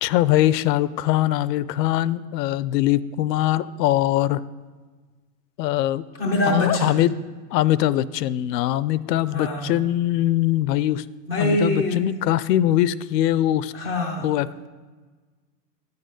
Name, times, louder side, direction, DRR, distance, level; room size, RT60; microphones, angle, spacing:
voice 1, 0.0-4.4 5.6-6.0 6.4-7.1 7.5-11.0 11.4-13.7 14.2-14.7, left 14 dB, 75° left, 18 dB, 0.5 m, -22 dB
voice 2, 6.2-6.9 9.3-9.7 11.3-12.0 13.7-14.3, left 2 dB, 5° right, -1 dB, 0.3 m, -23 dB
9.8 x 6.7 x 5.1 m, 1.4 s
supercardioid pair, 140°, 50 cm